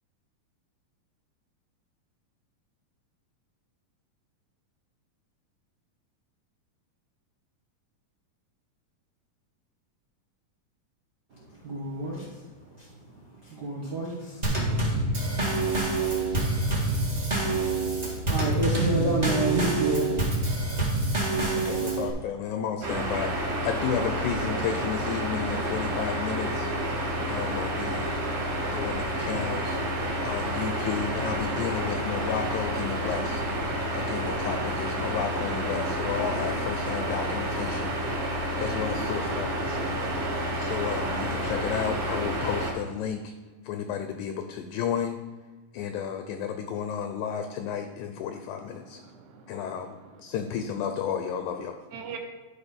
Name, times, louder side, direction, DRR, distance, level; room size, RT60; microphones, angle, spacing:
voice 1, 11.6-12.3 12.8-12.9 13.5-14.4 18.3-20.1, right 2 dB, 85° right, -4 dB, 0.9 m, -28 dB
Drum kit / Snare drum / Bass drum, 14.4-22.1, right 2 dB, 20° right, 1.1 m, -26 dB
voice 2, 21.5-26.7 27.3-28.1 28.7-29.8 30.2-33.4 33.9-38.0 38.6-40.0 40.6-43.3 43.6-45.2 45.7-49.0 49.5-51.8, left 7 dB, 75° left, 6 dB, 1.9 m, -32 dB
sound 1, 22.8-42.7, right 1 dB, 50° right, 2.5 m, -29 dB
voice 3, 48.6-50.2 51.9-52.2, right 7 dB, 70° right, 3 dB, 2.2 m, -44 dB
11.5 x 4.5 x 5.2 m, 1.3 s
omnidirectional pair, 3.9 m